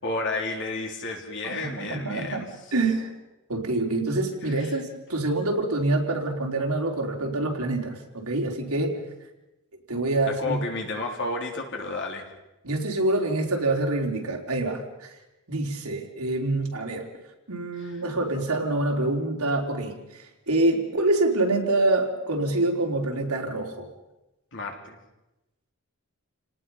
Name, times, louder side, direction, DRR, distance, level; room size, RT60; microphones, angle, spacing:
voice 1, 0.0-2.4 4.4-4.8 10.3-12.3 17.8-18.0 24.5-25.0, left 3 dB, 55° left, 2 dB, 3.9 m, -32 dB
voice 2, 1.4-3.1 3.5-9.0 9.9-10.6 12.6-15.2 15.5-17.1 17.5-23.9, right 2 dB, 85° right, 1 dB, 3.8 m, -26 dB
29.5 x 18.5 x 5.7 m, 0.98 s
head